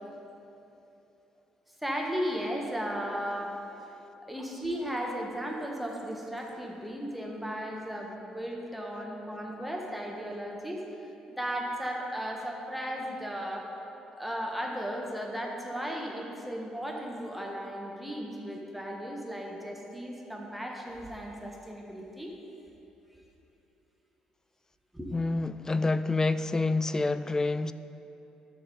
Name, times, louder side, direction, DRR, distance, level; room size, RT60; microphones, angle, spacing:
voice 1, 1.8-3.6 4.3-10.8 11.3-13.7 14.2-22.3 24.9-25.1, equal, ahead, 1.4 m, -35 dB
voice 2, 25.1-27.7, left 3 dB, 20° left, 0.3 m, -27 dB
12.5 x 6.0 x 4.0 m
figure-of-eight pair, 45°, 3 cm